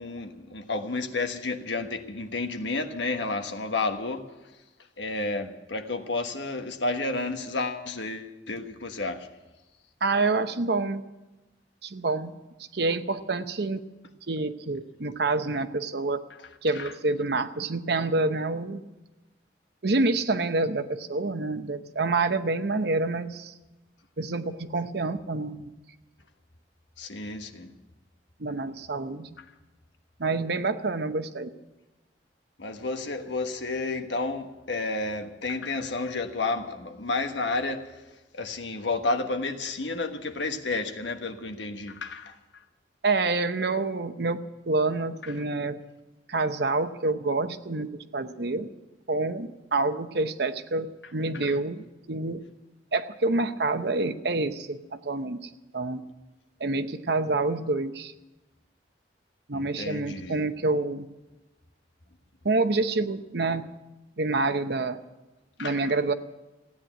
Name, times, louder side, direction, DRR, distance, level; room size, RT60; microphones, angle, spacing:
voice 1, 0.0-4.3 5.0-9.3 16.7-16.9 27.0-27.7 32.6-38.0 38.3-42.4 45.2-45.3 51.3-51.5 59.5-60.4 65.6-65.9, left 3 dB, 80° left, 1.3 m, -31 dB
voice 2, 10.0-11.0 11.8-12.3 12.7-13.8 14.3-16.2 16.6-18.8 19.8-23.5 24.2-25.7 28.4-29.4 30.2-31.5 43.0-45.8 46.3-48.7 49.1-52.4 52.9-56.0 56.6-58.1 59.5-61.1 62.4-63.6 64.2-65.0 65.6-66.1, right 3 dB, 60° right, 0.9 m, -27 dB
16.0 x 9.7 x 8.9 m
head